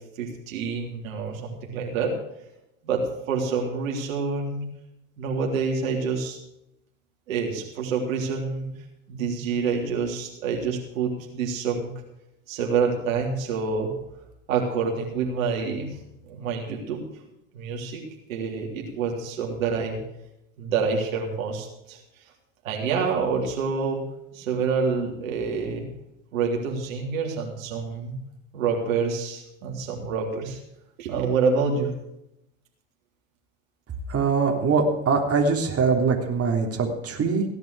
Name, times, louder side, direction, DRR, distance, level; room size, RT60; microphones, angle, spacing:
voice 1, 0.2-2.1 2.8-4.6 5.2-6.4 7.3-8.7 9.1-11.9 12.5-13.9 14.5-16.0 16.3-17.0 17.5-18.0 18.3-20.0 20.6-22.0 22.6-24.0 24.3-25.9 26.3-28.2 28.5-30.6 31.0-31.9, right 5 dB, 85° right, 0 dB, 3.5 m, -27 dB
voice 2, 34.1-37.4, right 4 dB, 35° right, 1 dB, 3.5 m, -22 dB
17.0 x 10.5 x 4.9 m, 0.83 s
hypercardioid pair, 85°, 39 cm